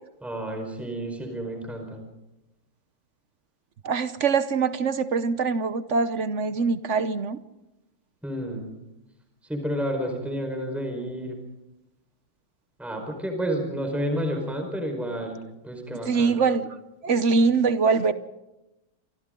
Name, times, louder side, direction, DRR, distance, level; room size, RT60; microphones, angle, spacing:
voice 1, 0.2-2.0 8.2-8.8 9.5-11.4 12.8-15.4 15.6-16.4, equal, ahead, 3 dB, 4.6 m, -30 dB
voice 2, 3.8-7.4 16.1-16.8 17.0-18.1, right 4 dB, 60° right, 12 dB, 0.7 m, -23 dB
29.0 x 25.0 x 3.9 m, 0.98 s
omnidirectional pair, 2.4 m